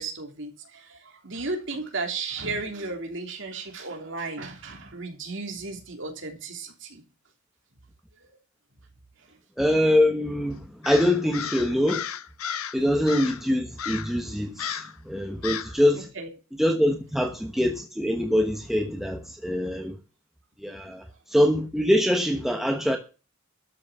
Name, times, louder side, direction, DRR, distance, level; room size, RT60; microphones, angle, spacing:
voice 1, 0.0-7.0 16.1-16.3, right 3 dB, 60° right, 3.2 m, -34 dB
voice 2, 9.6-12.0 12.7-16.1 16.6-19.9 20.6-21.0 21.3-23.0, left 1 dB, ahead, 1.1 m, -24 dB
Crow, 10.8-12.8 13.1-13.4 13.8-14.2 14.6-15.0 15.4-15.8, left 8 dB, 85° left, 1.0 m, -34 dB
13.0 x 6.2 x 7.3 m
head